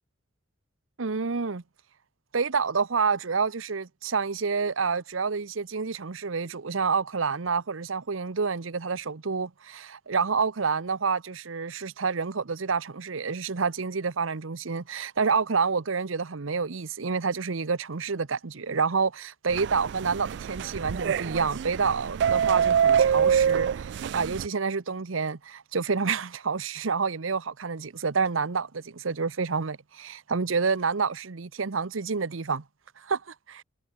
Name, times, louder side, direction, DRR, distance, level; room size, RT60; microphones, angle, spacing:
voice 1, 1.0-1.6 2.3-32.6 33.0-33.6, right 5 dB, 85° right, 0.9 m, -28 dB
sound 1, 19.5-24.5, right 7 dB, 60° right, 0.3 m, -25 dB
head